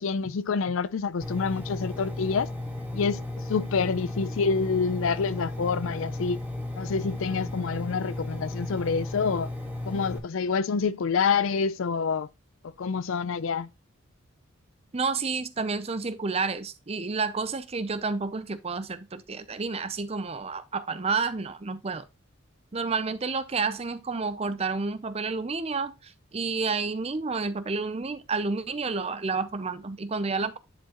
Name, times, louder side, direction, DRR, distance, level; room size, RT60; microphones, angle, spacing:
voice 1, 0.0-2.5 2.9-3.2 3.5-6.4 6.8-9.5 9.9-12.3 12.8-13.7, left 5 dB, 70° left, 0.4 m, -27 dB
Engine, 1.2-10.2, left 1 dB, 10° right, 1.7 m, -35 dB
voice 2, 14.9-22.0 22.7-30.6, right 4 dB, 30° right, 0.5 m, -30 dB
10.5 x 4.5 x 2.9 m
head